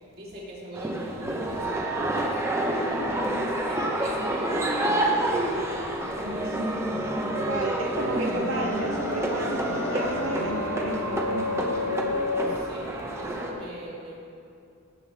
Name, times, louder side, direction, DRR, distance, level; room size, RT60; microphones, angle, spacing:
voice 1, 0.1-3.2 3.6-5.3 6.1-6.6 12.5-14.1, right 1 dB, 50° right, -6 dB, 2.6 m, -41 dB
sound 1, 0.7-13.5, right 1 dB, 15° right, 0.8 m, -28 dB
voice 2, 6.2-6.7 7.0-11.7, right 2 dB, 80° right, 0 dB, 0.7 m, -33 dB
sound 2, 6.7-12.6, left 4 dB, 65° left, 0.4 m, -33 dB
17.0 x 6.3 x 3.5 m, 2.6 s
head